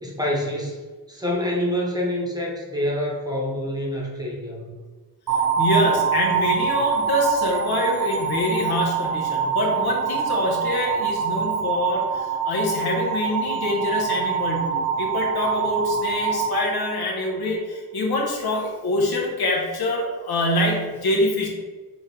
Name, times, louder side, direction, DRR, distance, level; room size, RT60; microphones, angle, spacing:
voice 1, 0.0-0.8 1.1-4.7, left 1 dB, 10° right, -3 dB, 0.8 m, -26 dB
sound 1, 5.3-17.4, right 6 dB, 65° right, 1.1 m, -25 dB
voice 2, 5.6-21.5, left 1 dB, 80° left, -2 dB, 1.1 m, -25 dB
4.1 x 3.2 x 3.7 m, 1.4 s
wide cardioid pair, 165°, 37 cm